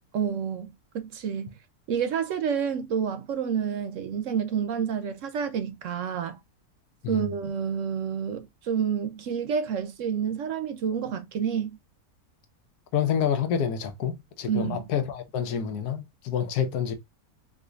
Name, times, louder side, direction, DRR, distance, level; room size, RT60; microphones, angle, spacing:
voice 1, 0.1-1.5 1.9-6.4 7.1-11.8 14.5-14.8, right 7 dB, 65° right, 0.8 m, -29 dB
voice 2, 12.9-16.9, left 8 dB, 90° left, 1.3 m, -28 dB
4.8 x 2.5 x 2.3 m
omnidirectional pair, 1.6 m